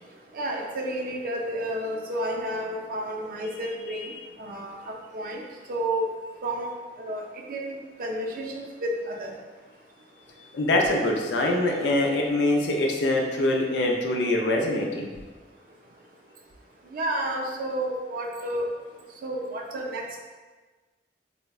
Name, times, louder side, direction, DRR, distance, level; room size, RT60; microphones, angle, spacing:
voice 1, 0.3-5.4 5.7-6.1 6.4-6.7 7.0-9.3 16.8-18.7 19.2-20.2, right 1 dB, 50° right, 0 dB, 0.4 m, -31 dB
voice 2, 10.5-15.1, left 1 dB, 80° left, 1 dB, 0.4 m, -24 dB
3.5 x 2.1 x 2.3 m, 1.3 s
head